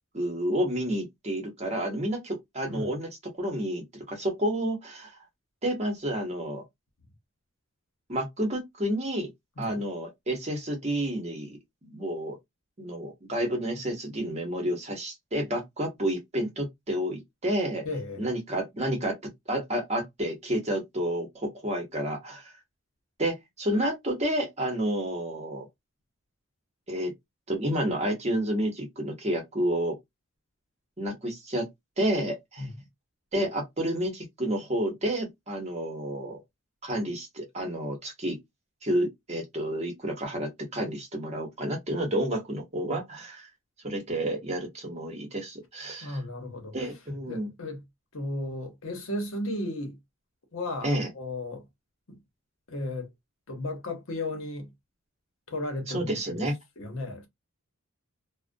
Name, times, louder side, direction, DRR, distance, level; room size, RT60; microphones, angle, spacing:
voice 1, 0.1-3.1 3.4-5.1 5.6-6.6 8.1-9.3 9.6-12.4 12.8-17.9 18.2-19.2 19.5-22.5 23.2-25.7 26.9-27.1 27.5-30.0 31.0-31.7 32.0-32.6 33.3-36.4 36.8-38.4 38.8-43.5 43.8-46.2 46.7-47.5 50.8-51.1 55.9-56.6, right 1 dB, 30° right, 0.8 m, -30 dB
voice 2, 17.8-18.2 32.6-32.8 46.0-46.7 47.3-47.8 48.1-50.0 50.5-51.6 52.1-52.2 52.7-53.1 53.5-54.7 55.5-56.5 56.8-57.3, left 1 dB, 65° left, 0.8 m, -34 dB
2.4 x 2.1 x 2.5 m
head